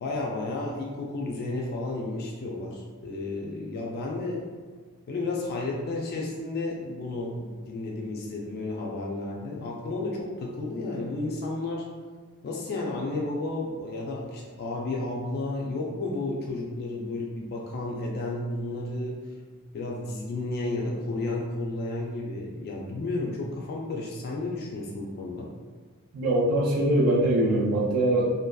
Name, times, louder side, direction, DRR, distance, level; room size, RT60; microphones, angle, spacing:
voice 1, 0.0-4.4 5.1-11.8 12.4-19.1 19.7-25.5, left 2 dB, 45° left, -2 dB, 0.3 m, -32 dB
voice 2, 26.1-28.4, right 1 dB, 85° right, -4 dB, 0.5 m, -22 dB
2.6 x 2.2 x 2.2 m, 1.5 s
head